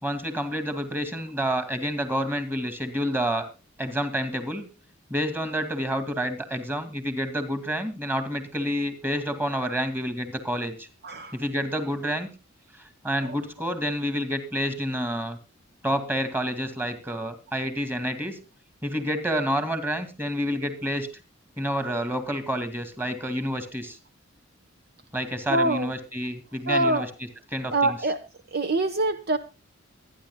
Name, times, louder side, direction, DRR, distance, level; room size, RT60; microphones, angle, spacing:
voice 1, 0.0-3.5 3.8-4.7 5.1-10.9 11.3-12.3 13.0-15.4 15.8-18.4 18.8-21.1 21.6-24.0 25.1-28.1, equal, 10° right, 10 dB, 2.2 m, -29 dB
voice 2, 11.0-11.3 13.2-13.4 25.5-25.9 26.7-27.1 27.7-28.2 28.5-29.4, right 2 dB, 50° right, 9 dB, 1.1 m, -24 dB
24.0 x 10.5 x 2.2 m, 0.30 s
head